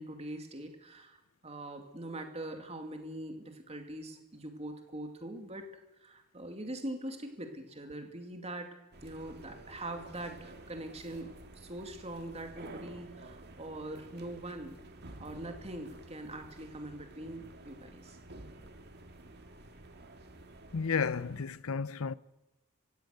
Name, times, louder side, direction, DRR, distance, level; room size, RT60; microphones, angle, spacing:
voice 1, 0.0-5.7 6.0-14.8 15.2-18.2, right 1 dB, 30° right, 2.6 m, -43 dB
sound 1, 8.9-21.5, right 2 dB, 50° right, 2.0 m, -51 dB
voice 2, 20.7-22.1, left 5 dB, 75° left, 0.7 m, -32 dB
27.5 x 16.0 x 6.6 m
head